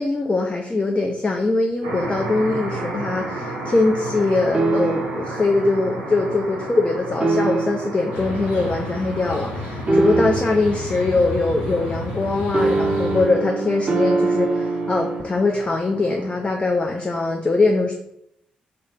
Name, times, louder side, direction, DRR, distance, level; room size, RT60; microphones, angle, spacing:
voice 1, 0.0-17.9, left 3 dB, 25° left, 2 dB, 0.4 m, -22 dB
sound 1, 1.8-16.5, right 2 dB, 80° right, 0.6 m, -34 dB
sound 2, 4.5-5.3 7.2-8.0 9.9-10.7 12.5-15.2, right 3 dB, 30° right, 0.5 m, -22 dB
sound 3, 8.1-13.3, left 2 dB, 80° left, 0.7 m, -31 dB
2.8 x 2.7 x 3.3 m, 0.76 s
figure-of-eight pair, 40°, 4 cm